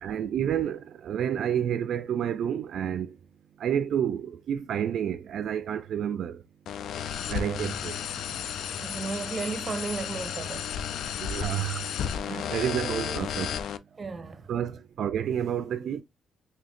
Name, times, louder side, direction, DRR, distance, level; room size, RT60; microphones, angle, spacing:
voice 1, 0.0-3.2 3.6-6.4 7.3-8.0 11.2-11.8 12.3-13.6 14.5-16.0, right 9 dB, 65° right, 0.4 m, -29 dB
sound 1, 6.7-13.8, left 8 dB, 75° left, 0.4 m, -33 dB
voice 2, 8.4-11.1 11.7-11.8 14.0-14.4, right 4 dB, 30° right, 0.7 m, -35 dB
3.6 x 2.8 x 3.5 m
cardioid pair, 90°, 0 cm